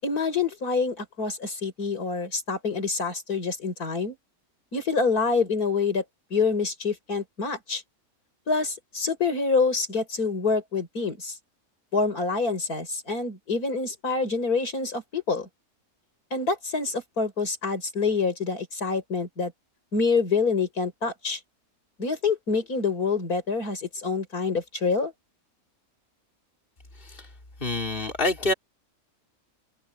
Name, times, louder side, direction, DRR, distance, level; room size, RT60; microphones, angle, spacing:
voice 1, 0.0-4.2 4.7-6.0 6.3-7.8 8.5-11.3 11.9-15.5 16.3-19.5 19.9-21.4 22.0-25.1, left 4 dB, 80° left, 5.7 m, -26 dB
voice 2, 27.6-28.5, left 2 dB, 35° left, 4.0 m, -26 dB
omnidirectional pair, 1.6 m